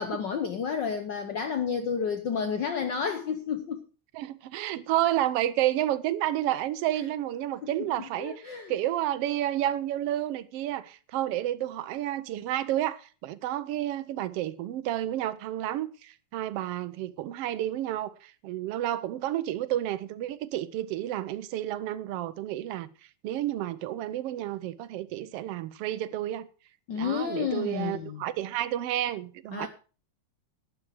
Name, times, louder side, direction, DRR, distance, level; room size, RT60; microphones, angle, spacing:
voice 1, 0.0-3.8 8.2-8.7 26.9-28.2 29.5-29.7, left 6 dB, 75° left, 1.0 m, -30 dB
voice 2, 4.1-8.4 8.7-22.9 23.2-26.5 26.9-29.7, right 13 dB, 75° right, 1.4 m, -30 dB
12.0 x 9.8 x 4.9 m
omnidirectional pair, 3.4 m